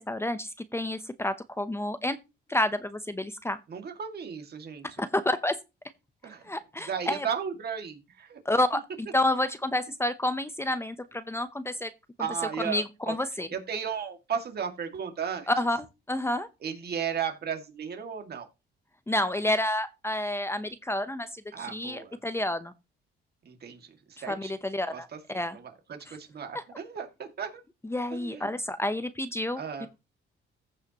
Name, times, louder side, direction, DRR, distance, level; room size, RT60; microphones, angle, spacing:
voice 1, 0.0-2.2 2.5-3.6 5.0-5.6 6.4-7.3 8.4-8.8 9.1-11.9 12.6-13.5 15.5-15.8 16.1-16.5 19.1-22.7 24.3-25.6 26.5-26.6 27.9-29.9, left 1 dB, 10° left, 12 dB, 0.8 m, -29 dB
voice 2, 3.7-4.9 6.2-6.5 6.8-8.4 12.2-13.1 13.5-15.5 16.6-18.5 21.5-22.2 23.4-24.6 24.9-27.6 28.1-28.5 29.6-29.9, right 7 dB, 55° right, 5 dB, 2.2 m, -35 dB
15.0 x 5.6 x 3.0 m, 0.26 s
cardioid pair, 90°, 20 cm